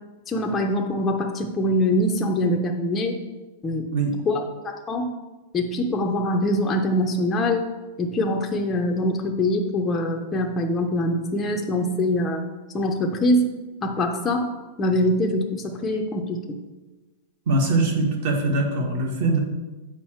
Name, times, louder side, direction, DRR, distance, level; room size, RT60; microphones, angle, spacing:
voice 1, 0.3-3.2 3.6-3.9 4.3-5.1 5.5-7.7 8.0-12.4 12.7-13.5 13.8-14.5 14.8-16.6, left 1 dB, 15° left, 1 dB, 0.5 m, -23 dB
voice 2, 17.5-19.4, right 2 dB, 55° right, 2 dB, 1.5 m, -22 dB
7.1 x 5.0 x 4.4 m, 1.2 s
supercardioid pair, 165°, 0 cm